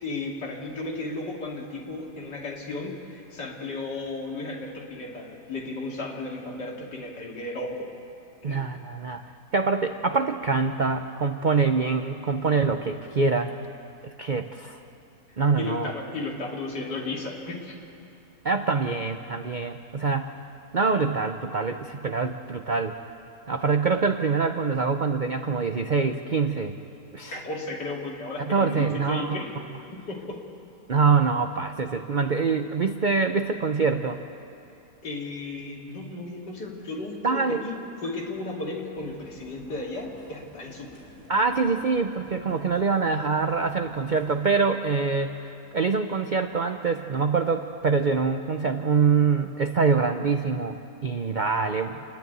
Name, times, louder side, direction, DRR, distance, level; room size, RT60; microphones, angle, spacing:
voice 1, 0.0-7.9 8.4-8.6 15.6-17.8 27.3-29.5 29.9-30.5 35.0-41.0, left 2 dB, 80° left, -1 dB, 3.1 m, -34 dB
voice 2, 8.4-9.2 9.5-13.5 14.2-14.8 15.4-15.9 18.4-20.3 20.7-23.0 23.5-26.7 27.1-27.4 28.4-29.4 30.9-34.2 37.2-37.6 41.3-52.0, right 4 dB, 85° right, 7 dB, 0.4 m, -25 dB
sound 1, 38.9-44.6, left 1 dB, 55° left, 7.1 m, -51 dB
28.0 x 10.5 x 9.3 m, 2.6 s
omnidirectional pair, 1.8 m